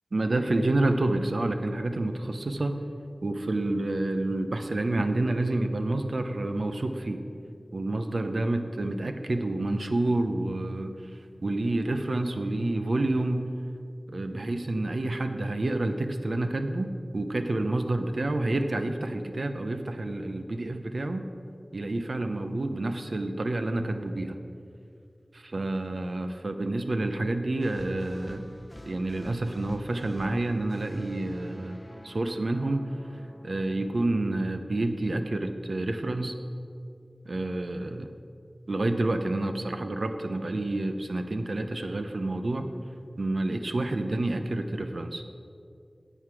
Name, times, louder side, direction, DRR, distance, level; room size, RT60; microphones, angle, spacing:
voice 1, 0.1-2.8 3.2-7.2 7.7-13.5 14.1-16.9 17.1-21.2 21.7-24.4 25.3-28.5 28.9-36.3 37.2-38.1 38.7-42.7 43.2-45.2, right 2 dB, 70° right, 7 dB, 0.7 m, -29 dB
sound 1, 27.6-35.8, equal, 20° left, 0.7 m, -49 dB
8.0 x 7.7 x 6.1 m, 2.4 s
wide cardioid pair, 45°, 0 cm